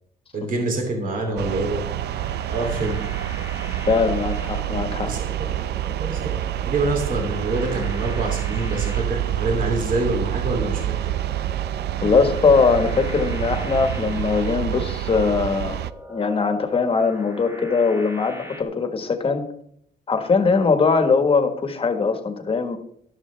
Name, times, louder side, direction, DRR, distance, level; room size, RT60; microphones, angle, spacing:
voice 1, 0.3-1.8 2.1-3.0 5.0-5.5 6.0-11.1, right 2 dB, 55° right, 1 dB, 2.9 m, -26 dB
sound 1, 1.1-18.6, equal, 15° right, 1.3 m, -42 dB
sound 2, 1.4-15.9, right 13 dB, 70° right, 0.5 m, -27 dB
voice 2, 3.9-5.1 12.0-15.8 16.1-19.5 20.1-22.8, left 4 dB, 30° left, 7 dB, 1.5 m, -21 dB
12.5 x 12.5 x 3.4 m, 0.68 s
cardioid pair, 150°, 17 cm